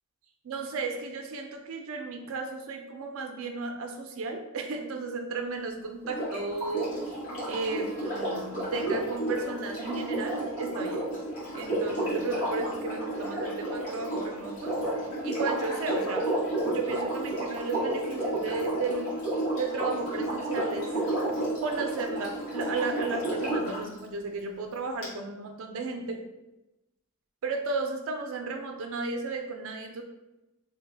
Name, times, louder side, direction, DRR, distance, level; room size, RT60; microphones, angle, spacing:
voice 1, 0.4-6.9 7.5-11.0 11.5-14.7 15.2-16.3 16.6-19.2 19.6-20.9 21.6-26.2 27.4-30.0, right 3 dB, 70° right, 4 dB, 0.4 m, -34 dB
Sink (filling or washing), 6.0-23.8 25.0-25.1, right 1 dB, 85° left, 1.4 m, -31 dB
3.2 x 2.2 x 3.3 m, 0.98 s
head